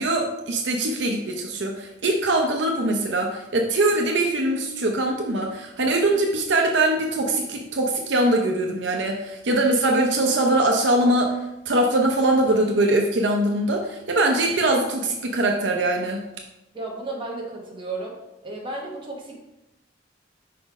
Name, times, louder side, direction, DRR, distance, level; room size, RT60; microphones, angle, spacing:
voice 1, 0.0-11.3 11.7-16.2, right 1 dB, 65° right, 1 dB, 0.7 m, -22 dB
voice 2, 16.7-18.2 18.4-19.3, right 2 dB, 25° right, -2 dB, 1.3 m, -33 dB
5.2 x 4.2 x 4.9 m, 0.93 s
head